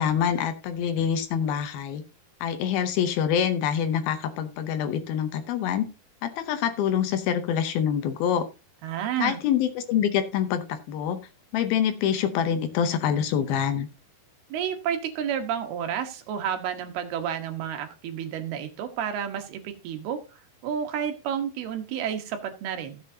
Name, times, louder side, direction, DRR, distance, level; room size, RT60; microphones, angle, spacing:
voice 1, 0.0-2.0 2.4-5.9 6.2-8.5 9.2-11.2 11.5-13.9, left 8 dB, 75° left, 10 dB, 2.5 m, -25 dB
voice 2, 8.8-9.4 14.5-20.2 20.6-23.0, right 9 dB, 75° right, 5 dB, 3.1 m, -30 dB
15.5 x 7.6 x 2.7 m, 0.29 s
omnidirectional pair, 4.7 m